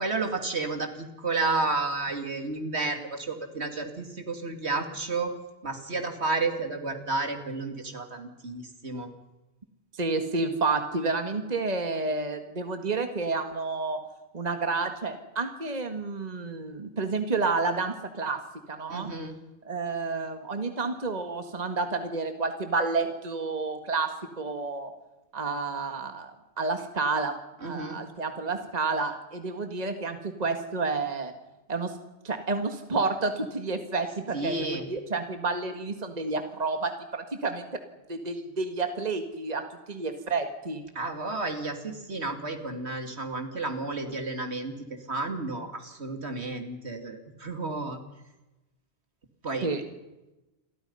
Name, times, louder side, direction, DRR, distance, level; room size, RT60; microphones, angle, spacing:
voice 1, 0.0-5.3 5.6-9.1 18.9-19.4 27.6-28.0 34.3-34.9 40.9-44.7 45.1-48.0 49.4-49.7, right 3 dB, 70° right, 6 dB, 3.0 m, -31 dB
voice 2, 9.9-14.0 14.3-18.4 18.7-19.1 19.7-24.1 24.4-24.9 25.3-26.3 26.6-27.3 27.6-31.3 31.7-31.9 32.2-37.7 38.1-40.8 49.6-49.8, right 3 dB, 35° right, 6 dB, 1.8 m, -30 dB
29.0 x 23.0 x 5.6 m, 1.0 s
omnidirectional pair, 1.2 m